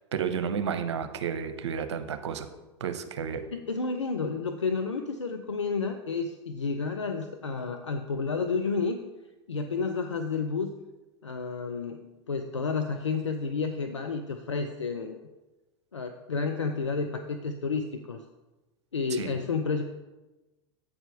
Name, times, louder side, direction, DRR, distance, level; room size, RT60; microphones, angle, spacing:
voice 1, 0.1-2.5 2.8-3.4 19.2-19.4, right 7 dB, 75° right, 9 dB, 0.8 m, -31 dB
voice 2, 3.5-9.0 9.5-10.7 11.2-15.2 15.9-18.2 18.9-19.8, left 4 dB, 90° left, 6 dB, 0.5 m, -31 dB
8.5 x 4.8 x 5.7 m, 1.1 s
hypercardioid pair, 90°, 15 cm